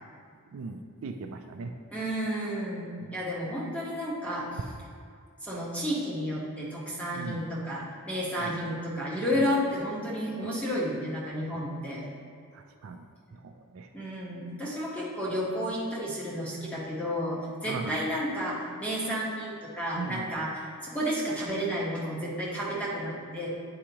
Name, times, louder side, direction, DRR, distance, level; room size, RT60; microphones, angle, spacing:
voice 1, 0.5-1.7 3.0-3.1 7.1-7.4 8.4-8.5 10.4-10.5 12.5-13.1 13.3-13.9 17.7-17.9 20.0-20.3, right 4 dB, 60° right, 5 dB, 0.4 m, -39 dB
voice 2, 1.9-4.6 5.4-12.0 13.9-23.5, equal, 5° left, -6 dB, 1.2 m, -31 dB
8.7 x 4.9 x 2.9 m, 2.2 s
head